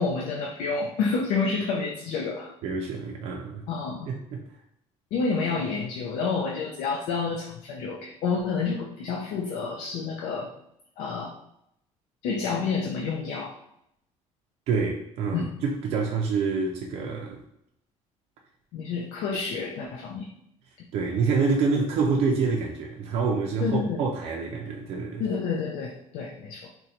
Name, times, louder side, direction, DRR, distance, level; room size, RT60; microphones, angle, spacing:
voice 1, 0.0-2.5 3.7-4.1 5.1-10.5 11.0-11.4 12.2-13.6 15.3-15.5 18.7-20.3 20.8-20.9 23.6-24.0 25.2-26.7, left 4 dB, 90° left, 0 dB, 0.5 m, -29 dB
voice 2, 2.6-3.6 4.1-4.4 14.7-17.4 20.9-25.2, right 4 dB, 55° right, -1 dB, 0.4 m, -27 dB
3.8 x 2.2 x 2.8 m, 0.76 s
cardioid pair, 175°, 13 cm